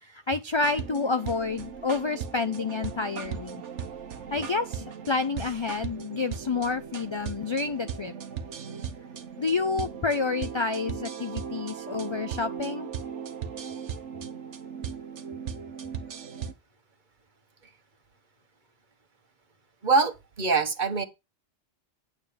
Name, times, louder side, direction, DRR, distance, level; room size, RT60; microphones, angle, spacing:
voice 1, 0.0-3.6 4.3-8.1 9.4-12.9, left 4 dB, 45° left, 0.3 m, -29 dB
sound 1, 0.6-16.5, right 7 dB, 85° right, 1.2 m, -37 dB
voice 2, 19.8-21.0, right 4 dB, 45° right, 1.2 m, -24 dB
8.9 x 3.9 x 6.9 m
omnidirectional pair, 1.2 m